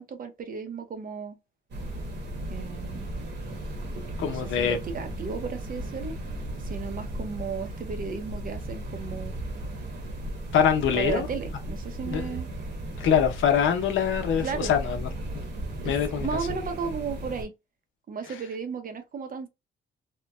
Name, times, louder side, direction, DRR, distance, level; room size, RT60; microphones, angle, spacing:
voice 1, 0.0-1.4 2.5-3.1 4.2-6.1 6.6-9.3 10.9-12.5 14.4-14.7 15.8-17.5 18.1-19.5, right 5 dB, 45° right, 0.7 m, -34 dB
sound 1, 1.7-17.5, right 1 dB, 65° right, 1.1 m, -36 dB
voice 2, 4.2-4.8 10.5-11.3 12.0-12.4 13.0-15.1 15.3-15.4 15.8-16.3, left 8 dB, 75° left, 0.7 m, -24 dB
3.0 x 2.1 x 2.3 m
cardioid pair, 90°, 20 cm